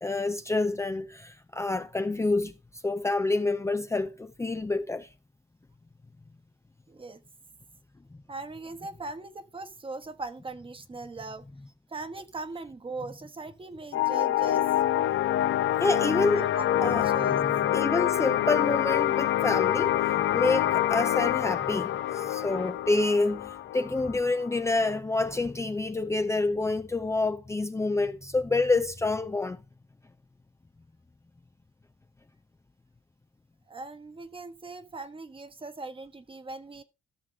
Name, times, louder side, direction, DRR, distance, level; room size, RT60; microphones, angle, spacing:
voice 1, 0.0-2.5 2.8-5.1 15.8-16.5 16.8-29.6, left 3 dB, 15° left, 0.6 m, -28 dB
voice 2, 6.9-7.2 8.3-11.4 11.9-14.7 16.3-17.4 33.7-36.8, right 3 dB, 25° right, 1.3 m, -40 dB
sound 1, 13.9-25.0, left 12 dB, 75° left, 0.8 m, -26 dB
14.0 x 6.7 x 3.6 m
cardioid pair, 90°, 20 cm